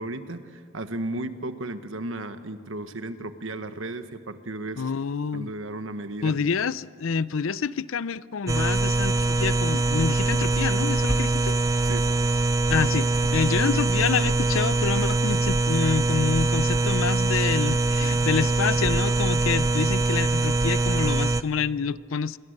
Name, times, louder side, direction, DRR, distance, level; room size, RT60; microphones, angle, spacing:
voice 1, 0.0-4.9 5.3-6.4 11.8-12.1, right 2 dB, 75° right, 1.3 m, -34 dB
voice 2, 4.8-5.5 6.2-11.6 12.7-22.4, left 6 dB, 80° left, 0.5 m, -27 dB
sound 1, 8.5-21.4, right 2 dB, 15° right, 0.6 m, -23 dB
27.5 x 23.0 x 6.6 m
head